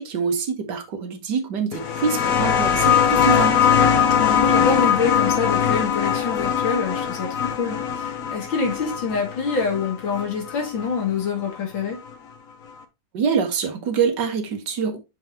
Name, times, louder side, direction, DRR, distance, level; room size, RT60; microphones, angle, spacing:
voice 1, 0.0-3.6 13.1-15.0, right 6 dB, 65° right, 1.7 m, -25 dB
sound 1, 1.7-11.0 12.1-12.2, left 8 dB, 55° left, 1.3 m, -21 dB
voice 2, 4.2-12.0, left 5 dB, 80° left, 2.9 m, -26 dB
7.0 x 5.3 x 2.7 m
omnidirectional pair, 2.1 m